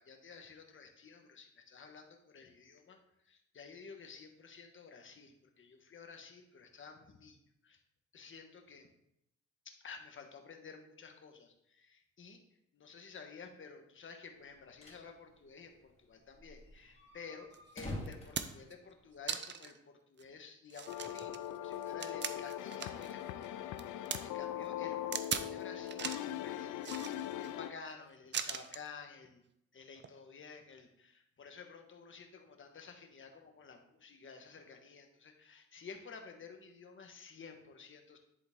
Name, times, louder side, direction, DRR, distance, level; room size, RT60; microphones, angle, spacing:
voice 1, 0.0-3.0 3.3-7.4 7.6-7.8 8.1-8.9 9.6-12.4 12.7-17.5 17.7-29.4 29.7-38.2, left 5 dB, 40° left, 4 dB, 1.3 m, -52 dB
sound 1, 14.6-15.1 15.4-15.5 15.7-15.8 16.3-19.3, left 1 dB, 20° left, 2.4 m, -47 dB
sound 2, 17.5-17.6 18.1-18.7 19.3-19.8 20.2-20.3 20.7-23.1 23.4-24.2 25.1-25.5 25.9-26.3 26.8-27.5 28.3-28.9 29.9-30.1, right 7 dB, 35° right, 0.6 m, -39 dB
sound 3, 20.9-27.7, left 12 dB, 80° left, 0.5 m, -40 dB
11.0 x 3.9 x 3.6 m, 0.79 s
cardioid pair, 90°, 30 cm